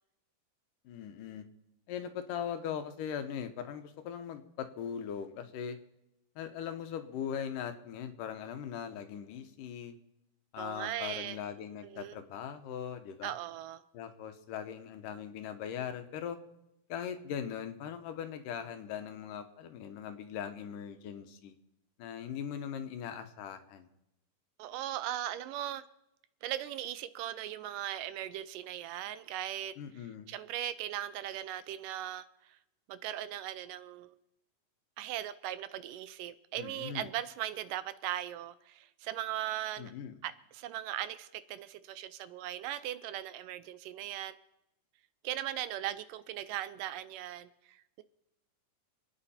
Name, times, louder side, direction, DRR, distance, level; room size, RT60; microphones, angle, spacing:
voice 1, 0.9-1.4 1.9-5.8 6.4-10.0 10.5-13.3 13.9-16.4 16.9-21.5 22.0-23.9 29.8-30.3 36.6-37.1 39.8-40.2, left 8 dB, 75° left, 2.6 m, -40 dB
voice 2, 10.6-11.4 11.8-12.2 13.2-13.8 24.6-25.8 26.4-29.7 30.3-32.2 32.9-34.2 35.0-39.9 40.2-44.4 45.2-48.0, right 12 dB, 80° right, 2.2 m, -38 dB
27.5 x 9.4 x 4.3 m
omnidirectional pair, 3.8 m